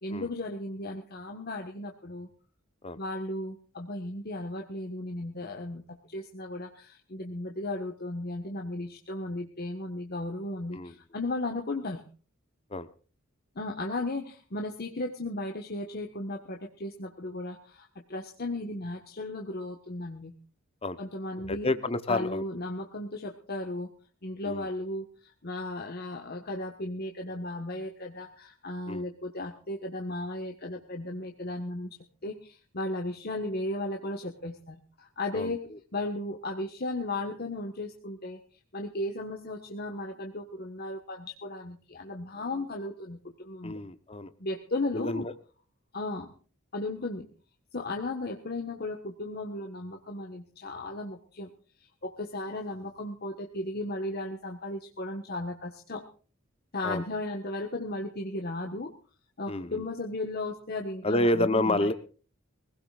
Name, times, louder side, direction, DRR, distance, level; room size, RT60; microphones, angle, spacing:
voice 1, 0.0-2.3 3.0-12.0 13.5-20.3 21.0-21.7 22.1-23.9 24.2-35.6 35.9-38.4 38.7-43.8 44.4-45.3 45.9-46.3 46.7-47.3 47.7-51.5 51.8-56.0 56.7-58.9 59.4-61.9, left 2 dB, 50° left, 2 dB, 1.5 m, -35 dB
voice 2, 21.5-22.4 24.4-24.6 28.9-29.0 35.3-35.6 43.6-44.3 44.9-45.3 56.8-57.0 59.5-59.8 61.0-61.9, left 2 dB, 30° left, 11 dB, 0.9 m, -29 dB
23.5 x 16.5 x 2.5 m, 0.39 s
head